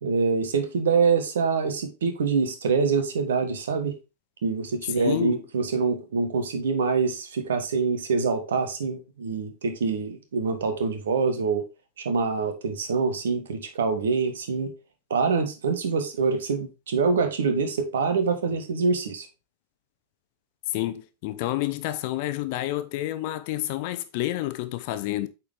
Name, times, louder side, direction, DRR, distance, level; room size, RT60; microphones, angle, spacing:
voice 1, 0.0-3.9 4.4-11.6 12.0-14.7 15.1-19.3, right 5 dB, 65° right, 1.3 m, -25 dB
voice 2, 5.0-5.4 20.7-25.3, left 15 dB, 45° left, 0.7 m, -29 dB
8.5 x 4.3 x 3.4 m
figure-of-eight pair, 90°, 0 cm